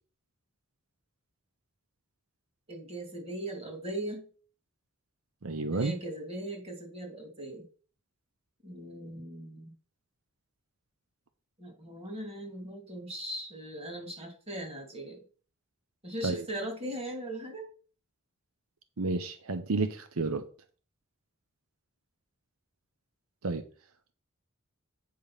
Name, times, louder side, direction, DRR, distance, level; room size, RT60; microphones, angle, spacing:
voice 1, 2.7-4.2 5.7-7.6 8.6-9.7 11.6-15.2 16.0-17.7, right 1 dB, 25° right, 2.4 m, -39 dB
voice 2, 5.4-5.9 16.2-16.4 19.0-20.5 23.4-23.6, right 3 dB, 85° right, 0.8 m, -31 dB
8.6 x 5.1 x 5.6 m
head